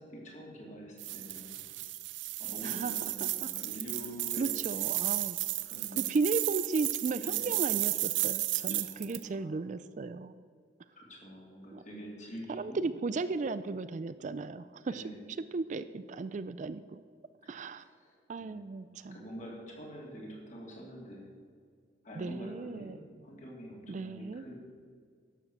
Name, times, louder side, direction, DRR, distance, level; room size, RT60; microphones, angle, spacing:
voice 1, 0.0-1.7 2.4-4.5 5.6-6.1 7.2-7.5 8.7-9.5 10.9-12.8 14.9-15.2 17.4-17.7 18.0-18.6 19.1-21.4 22.0-24.6, equal, 40° left, -2 dB, 3.3 m, -46 dB
sound 1, 1.0-9.2, right 16 dB, 80° right, 0.6 m, -33 dB
voice 2, 2.6-2.9 3.2-3.5 4.4-5.4 5.9-10.3 11.7-11.8 12.5-15.0 15.5-17.0 17.5-17.8 18.3-19.2 22.2-23.0 23.9-24.4, right 3 dB, 40° right, 13 dB, 0.3 m, -35 dB
11.5 x 7.5 x 7.4 m, 2.1 s
head